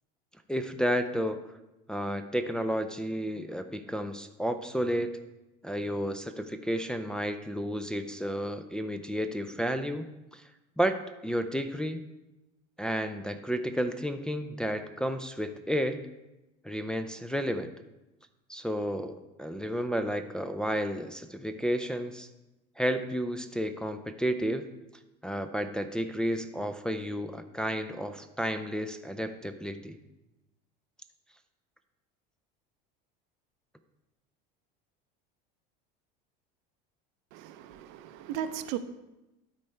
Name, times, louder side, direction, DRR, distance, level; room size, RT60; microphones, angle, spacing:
voice 1, 0.5-1.4 1.9-5.2 5.6-10.1 10.3-10.4 10.8-11.0 11.2-12.0 12.8-16.0 16.6-17.7 18.5-22.3 22.8-24.7 25.2-30.0, equal, 5° left, 6 dB, 0.4 m, -31 dB
voice 2, 37.3-38.8, right 10 dB, 65° right, 11 dB, 0.6 m, -36 dB
12.5 x 4.2 x 3.3 m, 0.98 s
supercardioid pair, 115°, 21 cm